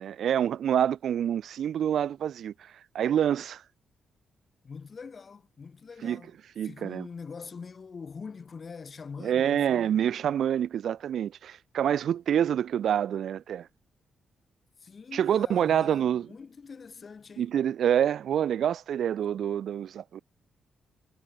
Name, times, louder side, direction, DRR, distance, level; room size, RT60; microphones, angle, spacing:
voice 1, 0.0-3.6 6.0-6.2 6.6-7.1 9.2-13.7 15.1-16.3 17.4-20.2, right 9 dB, 65° right, 1.1 m, -27 dB
voice 2, 4.6-6.3 6.6-10.0 14.8-17.6, left 5 dB, 35° left, 6.2 m, -44 dB
wide cardioid pair, 150°, 0 cm